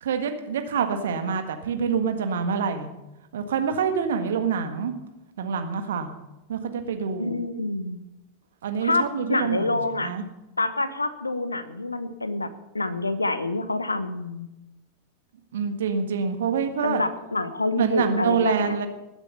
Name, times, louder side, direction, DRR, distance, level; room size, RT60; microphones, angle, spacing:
voice 1, 0.0-2.9 3.3-4.9 5.4-6.1 6.5-7.4 8.6-10.2 15.5-17.0 17.7-18.9, right 6 dB, 60° right, 7 dB, 1.7 m, -26 dB
voice 2, 7.2-8.0 8.8-10.1 10.6-14.5 16.8-18.8, left 2 dB, 80° left, 13 dB, 1.1 m, -27 dB
19.5 x 8.2 x 5.5 m, 0.95 s
figure-of-eight pair, 90°, 0 cm